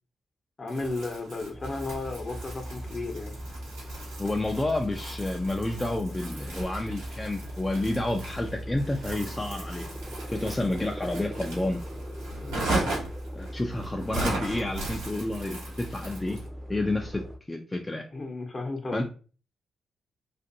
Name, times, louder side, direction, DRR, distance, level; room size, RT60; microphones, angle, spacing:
voice 1, 0.6-3.3 12.4-12.7 18.1-19.0, left 3 dB, 40° left, 3 dB, 0.8 m, -34 dB
Crumpling crinkling, 0.7-16.5, right 2 dB, 85° right, 1.0 m, -38 dB
sound 1, 1.5-17.4, equal, 25° right, 0.6 m, -39 dB
voice 2, 4.2-9.9 10.3-11.8 12.7-13.0 13.3-16.4 16.7-18.0 18.9-19.0, left 2 dB, 15° left, 1 dB, 0.4 m, -30 dB
2.5 x 2.5 x 2.6 m, 0.37 s
hypercardioid pair, 40°, 0 cm